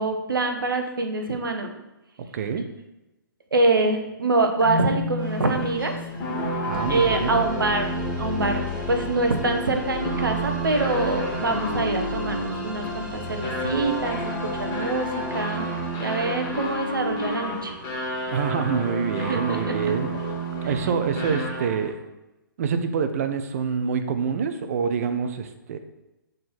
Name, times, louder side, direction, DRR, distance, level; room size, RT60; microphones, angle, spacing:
voice 1, 0.0-1.7 3.5-5.9 6.9-15.7 16.0-17.8 19.3-19.7, right 2 dB, 75° right, 4 dB, 1.1 m, -25 dB
voice 2, 2.3-2.7 6.6-7.4 18.3-20.3 20.6-22.0 22.6-25.8, right 6 dB, 45° right, 9 dB, 0.7 m, -26 dB
Marimba xylophone, 4.6-7.6, left 4 dB, 85° left, 1.4 m, -32 dB
sound 1, 5.2-21.9, right 1 dB, 25° left, 1.9 m, -31 dB
sound 2, 6.7-17.3, left 2 dB, 5° right, 1.2 m, -35 dB
6.4 x 4.1 x 4.2 m, 0.98 s
figure-of-eight pair, 130°, 11 cm